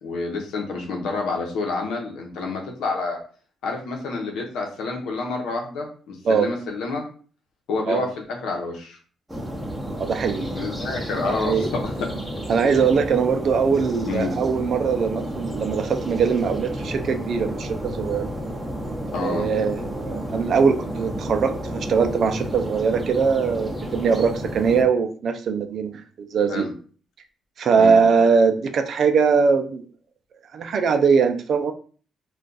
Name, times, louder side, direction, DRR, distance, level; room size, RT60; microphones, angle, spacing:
voice 1, 0.0-3.2 3.6-7.1 7.7-9.0 10.5-12.2 14.1-14.4 19.1-19.5 26.5-26.7 27.8-28.0, left 3 dB, 80° left, 1 dB, 0.9 m, -28 dB
sound 1, 9.3-24.8, equal, 5° right, 0.9 m, -31 dB
voice 2, 10.0-10.7 11.2-11.7 12.5-18.3 19.2-26.7 27.6-29.8 30.5-31.7, right 5 dB, 60° right, 7 dB, 0.4 m, -21 dB
2.4 x 2.3 x 3.9 m, 0.41 s
cardioid pair, 90°, 0 cm